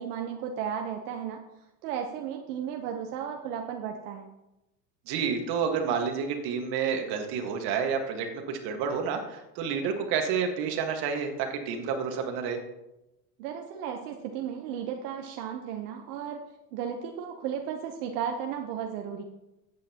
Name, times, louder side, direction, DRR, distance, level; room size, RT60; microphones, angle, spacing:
voice 1, 0.0-1.4 1.8-4.3 13.4-16.4 16.7-19.2, right 8 dB, 80° right, 3 dB, 1.1 m, -34 dB
voice 2, 5.1-12.6, right 6 dB, 55° right, 4 dB, 1.7 m, -29 dB
14.0 x 8.8 x 2.9 m, 0.93 s
supercardioid pair, 140°, 46 cm